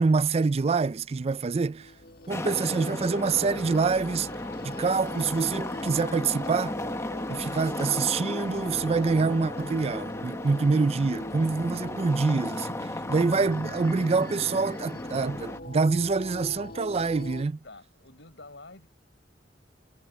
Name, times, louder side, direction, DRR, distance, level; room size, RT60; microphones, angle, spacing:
voice 1, 0.0-1.9 2.3-4.3 4.6-6.8 7.3-17.6, right 4 dB, 35° right, 0.4 m, -26 dB
sound 1, 1.7-17.4, left 1 dB, 55° left, 1.8 m, -42 dB
sound 2, 2.3-15.6, left 1 dB, 15° left, 1.1 m, -35 dB
voice 2, 17.6-18.9, left 2 dB, 75° left, 4.9 m, -49 dB
head